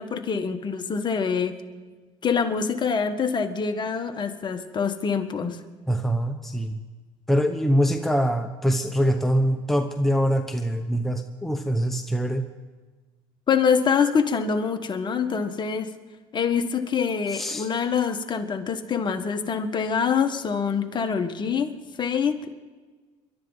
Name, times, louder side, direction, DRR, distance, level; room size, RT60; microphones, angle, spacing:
voice 1, 0.0-1.6 2.2-5.6 13.5-15.9 16.3-22.5, left 6 dB, 35° left, 6 dB, 1.5 m, -25 dB
voice 2, 5.9-6.8 7.3-12.4 17.3-17.7, equal, ahead, 5 dB, 1.0 m, -24 dB
30.0 x 12.0 x 4.0 m, 1.4 s
supercardioid pair, 105°, 14 cm